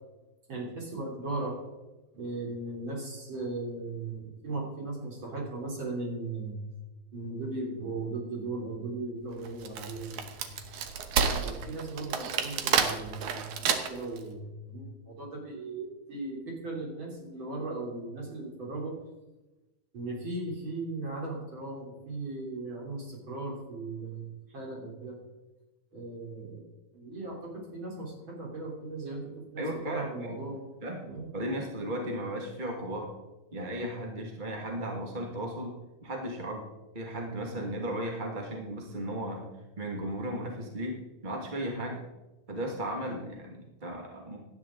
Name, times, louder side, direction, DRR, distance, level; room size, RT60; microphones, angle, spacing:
voice 1, 0.5-1.7 2.1-6.6 7.1-10.6 11.3-19.0 19.9-25.2 25.9-26.7 26.9-30.7 31.0-31.3, right 2 dB, 40° right, -3 dB, 3.9 m, -37 dB
Wood, 9.4-14.2, right 7 dB, 75° right, 2.5 m, -29 dB
voice 2, 29.6-30.4 30.8-31.1 31.3-33.1 33.5-35.7 36.0-36.6 36.9-39.4 39.8-41.0 41.2-42.0 42.5-44.4, right 1 dB, 20° right, 0 dB, 1.3 m, -35 dB
17.5 x 11.5 x 3.8 m, 1.1 s
omnidirectional pair, 3.6 m